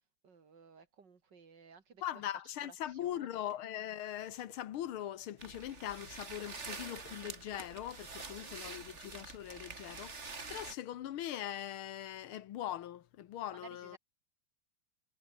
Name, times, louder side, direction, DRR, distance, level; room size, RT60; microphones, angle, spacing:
voice 1, 0.2-2.3 2.6-3.4 8.2-8.6 13.5-14.0, right 5 dB, 55° right, 2.9 m, -57 dB
voice 2, 2.0-14.0, left 12 dB, 80° left, 1.9 m, -41 dB
sound 1, 3.4-3.6 4.3-5.6 5.9-6.8 7.0-7.9 8.2-8.3, left 3 dB, 65° left, 7.4 m, -62 dB
sound 2, 5.4-10.7, right 4 dB, 35° right, 2.5 m, -46 dB
omnidirectional pair, 2.3 m